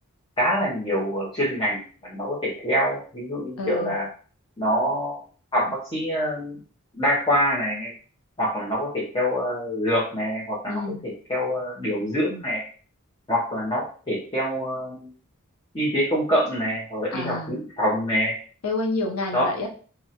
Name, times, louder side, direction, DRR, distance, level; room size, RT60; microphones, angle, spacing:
voice 1, 0.4-4.1 4.6-5.2 5.5-6.6 6.9-7.9 8.4-12.6 13.3-15.1 15.7-18.3 19.3-19.5, equal, 20° left, -6 dB, 0.6 m, -25 dB
voice 2, 3.6-4.0 10.7-11.0 17.1-17.6 18.6-19.7, left 2 dB, 75° left, 1 dB, 0.6 m, -28 dB
2.8 x 2.2 x 2.7 m, 0.42 s
head